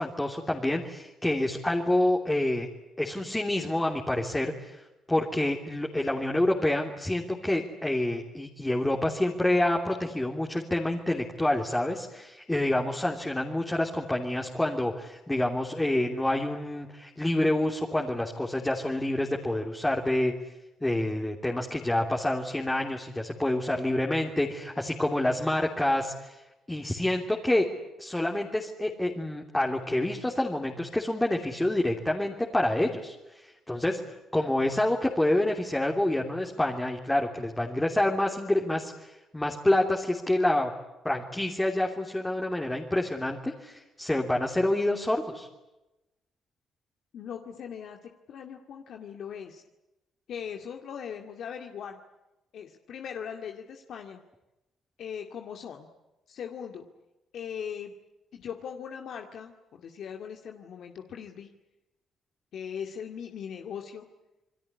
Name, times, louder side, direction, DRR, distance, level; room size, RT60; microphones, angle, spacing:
voice 1, 0.0-2.7 3.0-4.8 5.1-20.3 20.8-26.4 26.7-27.7 28.0-33.1 33.4-34.0 34.3-40.7 41.0-45.5, left 1 dB, 10° left, 0 dB, 3.2 m, -27 dB
voice 2, 47.1-49.6 50.3-52.0 52.5-54.2 55.0-55.9 56.3-56.9 57.3-57.9 58.3-61.5 62.5-64.0, left 8 dB, 70° left, 3 dB, 2.2 m, -39 dB
28.5 x 21.5 x 9.8 m, 0.99 s
cardioid pair, 90°, 0 cm